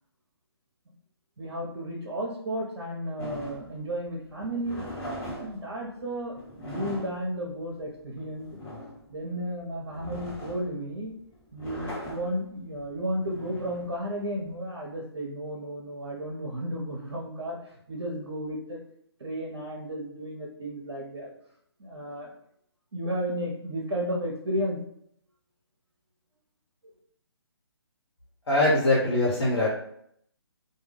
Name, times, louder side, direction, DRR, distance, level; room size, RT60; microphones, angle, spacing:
voice 1, 1.4-4.9 5.3-8.5 9.1-11.1 11.5-18.8 19.2-21.3 21.8-22.3 22.9-24.8 26.8-26.9, equal, 75° right, -2 dB, 0.6 m, -33 dB
sound 1, 3.2-14.6, left 1 dB, 25° left, 1.1 m, -41 dB
voice 2, 28.5-29.7, left 2 dB, 70° left, -7 dB, 0.9 m, -22 dB
2.2 x 2.2 x 3.3 m, 0.70 s
figure-of-eight pair, 145°, 14 cm